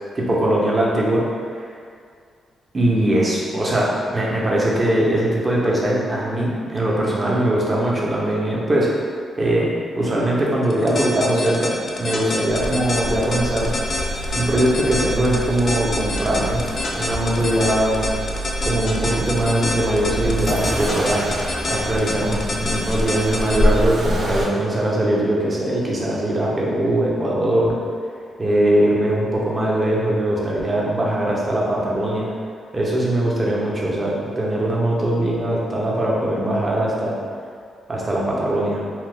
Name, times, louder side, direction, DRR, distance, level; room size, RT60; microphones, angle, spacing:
voice 1, 0.1-1.2 1.5-1.7 2.7-9.0 9.4-9.7 9.9-13.7 14.3-16.6 17.0-18.1 18.6-21.2 21.7-27.8 28.4-32.3 32.7-37.1 37.9-38.8, right 1 dB, 35° right, -4 dB, 0.6 m, -21 dB
sound 1, 10.6-23.6, left 2 dB, 55° left, 0.4 m, -26 dB
Accelerating revving vroom, 12.5-24.4, equal, 75° right, 0.4 m, -27 dB
2.8 x 2.0 x 3.2 m, 2.2 s
cardioid pair, 70°, 0 cm